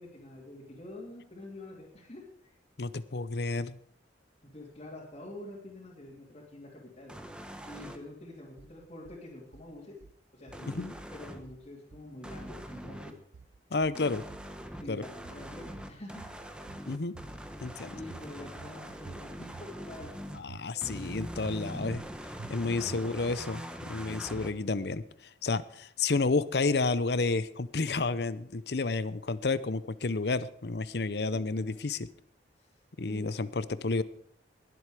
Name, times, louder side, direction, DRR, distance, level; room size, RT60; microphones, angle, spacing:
voice 1, 0.0-2.5 4.4-7.1 7.6-10.0 10.3-10.8 11.1-13.1 14.8-16.3 17.9-20.3 20.7-21.2 31.3-31.8 32.6-32.7 33.1-33.2, left 1 dB, 35° left, -5 dB, 2.9 m, -47 dB
voice 2, 2.8-3.8 10.7-10.9 13.7-14.2 14.9-15.0 16.9-17.1 17.6-17.9 20.3-22.0 22.5-32.1 33.0-34.0, left 3 dB, 60° left, 16 dB, 0.7 m, -31 dB
sound 1, 7.1-8.0 10.5-11.4 12.2-13.1 13.9-20.4 20.8-24.5, equal, 5° right, 1.1 m, -42 dB
sound 2, 8.6-9.2 9.5-10.2 10.5-11.2 11.4-12.1 12.4-13.1 13.3-14.0 14.3-15.0 15.2-15.9 16.2-16.9 17.1-17.8 18.1-18.8 19.1-19.7 20.0-20.7 20.9-21.1 21.4-22.1 22.4-22.5 22.9-23.4, right 4 dB, 80° right, 0.5 m, -50 dB
20.5 x 7.9 x 5.0 m, 0.63 s
head